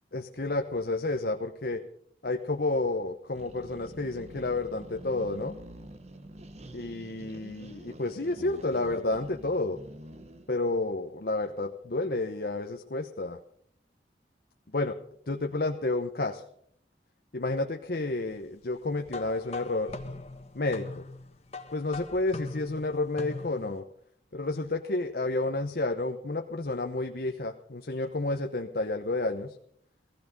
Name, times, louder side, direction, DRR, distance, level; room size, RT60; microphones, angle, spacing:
voice 1, 0.1-1.8 2.2-5.5 6.7-9.8 10.5-13.4 14.7-15.0 15.3-16.4 17.3-19.9 20.5-21.0 21.7-23.8 24.3-29.6, left 2 dB, 60° left, 5 dB, 1.0 m, -30 dB
sound 1, 3.3-10.5, right 1 dB, 40° right, 1.0 m, -47 dB
sound 2, 19.1-23.8, left 3 dB, 35° left, 1.5 m, -41 dB
16.5 x 15.5 x 5.3 m, 0.66 s
head